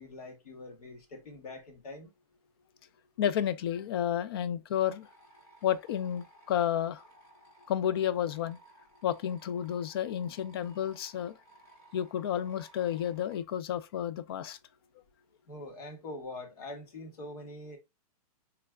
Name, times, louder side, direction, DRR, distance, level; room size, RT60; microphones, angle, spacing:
voice 1, 0.0-2.1 15.5-17.8, left 2 dB, 80° left, 1.6 m, -44 dB
voice 2, 3.2-5.1 5.6-7.0 7.7-8.6 9.0-11.3 11.9-14.6, left 10 dB, 40° left, 0.4 m, -31 dB
sound 1, 4.8-13.4, right 1 dB, 15° left, 0.9 m, -59 dB
3.5 x 3.3 x 2.2 m
hypercardioid pair, 165°, 19 cm